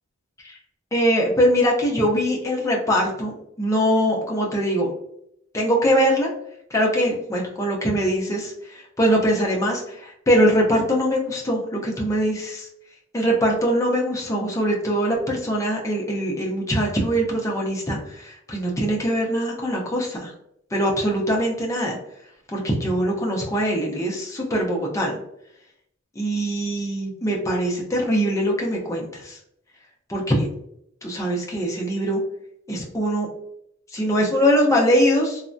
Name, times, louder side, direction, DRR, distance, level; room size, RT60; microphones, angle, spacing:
voice 1, 0.9-4.9 5.5-6.3 6.7-12.7 13.1-20.3 20.7-22.0 22.5-25.2 26.2-29.4 30.1-30.5 31.0-32.2 32.7-33.3 33.9-35.4, equal, 15° left, -1 dB, 0.5 m, -22 dB
3.2 x 2.0 x 2.5 m, 0.75 s
head